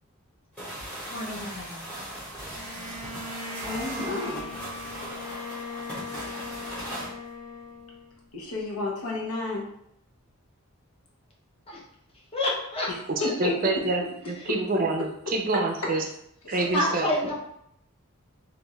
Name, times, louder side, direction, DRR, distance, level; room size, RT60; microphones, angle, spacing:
sound 1, 0.6-7.1, equal, 5° left, 1.1 m, -38 dB
voice 1, 1.1-1.8 11.7-11.8 12.3-12.9 13.2-13.3 16.7-17.3, left 1 dB, 25° left, -3 dB, 0.7 m, -28 dB
Bowed string instrument, 2.5-8.3, left 3 dB, 55° left, 1.0 m, -39 dB
voice 2, 3.5-4.5 8.3-9.7 13.2-13.5 16.4-16.6, left 3 dB, 85° left, -2 dB, 0.9 m, -31 dB
voice 3, 13.1-14.0 14.3-16.0 16.5-17.1, right 3 dB, 40° right, 2 dB, 0.4 m, -27 dB
3.5 x 2.5 x 3.0 m, 0.74 s
head